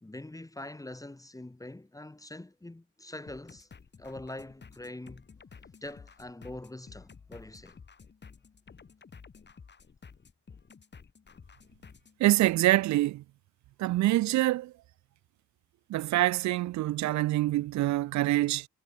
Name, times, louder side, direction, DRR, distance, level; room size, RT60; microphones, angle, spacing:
voice 1, 0.0-3.7 4.0-5.3 5.8-7.8, left 1 dB, 10° left, 2.4 m, -44 dB
sound 1, 3.3-12.2, left 5 dB, 35° left, 4.2 m, -52 dB
voice 2, 12.2-13.2 13.8-14.7 15.9-18.7, right 16 dB, 70° right, 0.5 m, -25 dB
cardioid pair, 90°, 30 cm